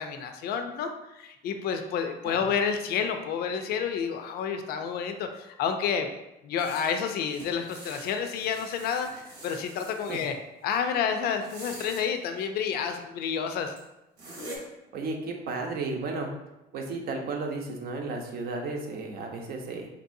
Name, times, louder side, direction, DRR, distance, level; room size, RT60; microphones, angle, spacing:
voice 1, 0.0-6.1 6.4-10.3 10.6-13.7, left 7 dB, 70° left, 6 dB, 0.4 m, -30 dB
sound 1, 6.6-10.3 11.3-12.0 13.2-13.3 13.8-13.9 14.2-14.6, right 1 dB, 90° right, 1.1 m, -45 dB
voice 2, 14.9-16.3 16.7-19.9, right 3 dB, 65° right, 2 dB, 0.7 m, -33 dB
4.4 x 2.7 x 2.6 m, 0.93 s
cardioid pair, 110°, 17 cm